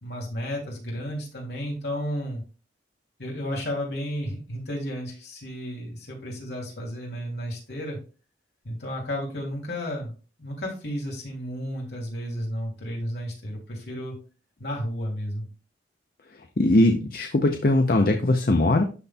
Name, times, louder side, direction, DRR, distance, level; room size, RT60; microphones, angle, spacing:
voice 1, 0.0-2.4 3.2-8.0 8.6-14.2 14.6-15.5, equal, 70° left, -2 dB, 2.8 m, -32 dB
voice 2, 16.6-18.8, left 2 dB, 50° left, 4 dB, 0.6 m, -20 dB
12.0 x 4.2 x 2.3 m, 0.34 s
head